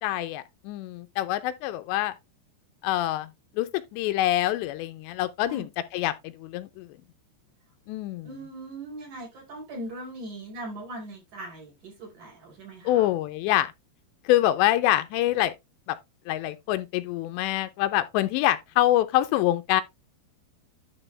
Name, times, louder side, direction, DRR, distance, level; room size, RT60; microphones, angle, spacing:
voice 1, 0.0-2.1 2.8-3.3 3.6-6.9 7.9-8.3 12.8-13.7 14.3-15.5 15.9-16.0 16.3-19.8, left 14 dB, 85° left, 2.8 m, -25 dB
voice 2, 8.2-13.1, right 1 dB, 45° right, 5.4 m, -40 dB
11.0 x 4.7 x 3.2 m
omnidirectional pair, 5.1 m